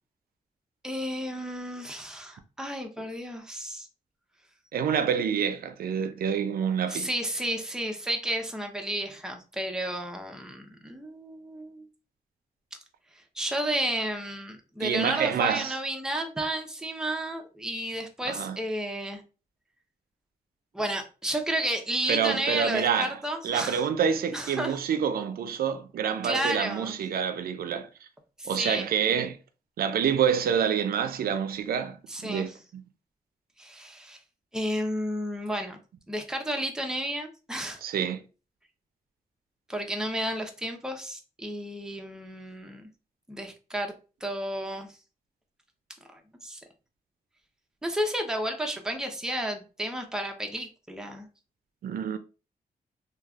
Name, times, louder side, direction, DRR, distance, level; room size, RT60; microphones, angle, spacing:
voice 1, 0.8-3.9 6.9-11.9 13.4-19.2 20.7-23.8 24.3-24.8 26.2-27.0 28.4-28.9 32.1-32.6 33.6-34.2 34.5-35.8 36.1-37.8 39.7-42.9 43.3-43.9 44.2-44.9 46.1-46.6 47.8-51.3, right 1 dB, 5° right, 0.6 m, -32 dB
voice 2, 4.7-7.1 14.8-15.7 18.2-18.6 22.1-23.1 23.4-27.9 28.5-29.4 29.8-32.8 37.8-38.2 51.8-52.2, right 7 dB, 75° right, 0.4 m, -27 dB
3.1 x 2.3 x 2.4 m
cardioid pair, 80°, 16 cm